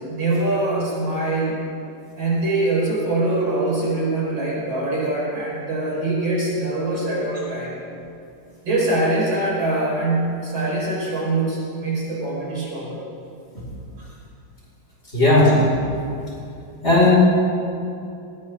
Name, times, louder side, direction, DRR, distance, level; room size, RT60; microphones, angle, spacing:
voice 1, 0.1-1.6 2.2-7.7 8.6-13.0 14.0-14.1, right 2 dB, 65° right, -5 dB, 5.4 m, -23 dB
voice 2, 15.1-15.5 16.8-17.1, left 2 dB, 30° left, -6 dB, 5.6 m, -14 dB
20.0 x 19.0 x 3.7 m, 2.6 s
omnidirectional pair, 2.3 m